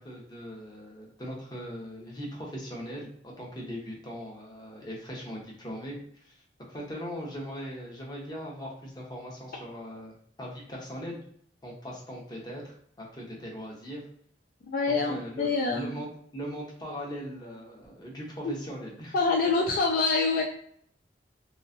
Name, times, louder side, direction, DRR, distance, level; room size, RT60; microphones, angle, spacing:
voice 1, 0.0-6.4 6.7-11.2 11.6-14.0 14.9-15.5 15.8-19.1, equal, 25° left, -2 dB, 0.9 m, -40 dB
voice 2, 14.7-15.9 18.4-18.5 19.1-20.4, left 3 dB, 55° left, 0 dB, 0.4 m, -26 dB
3.0 x 2.4 x 2.6 m, 0.64 s
head